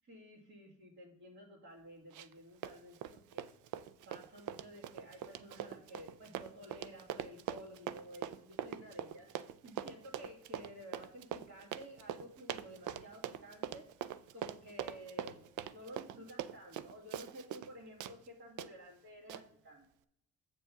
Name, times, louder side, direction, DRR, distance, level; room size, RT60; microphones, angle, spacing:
voice 1, 0.0-3.4 4.0-9.3 9.6-19.8, equal, 50° right, -7 dB, 2.3 m, -53 dB
Run, 2.1-2.4 2.6-17.7 18.0-18.2 18.6-18.7 19.3-19.4, right 11 dB, 80° right, 0.5 m, -42 dB
7.8 x 7.5 x 3.5 m, 0.73 s
cardioid pair, 90°, 30 cm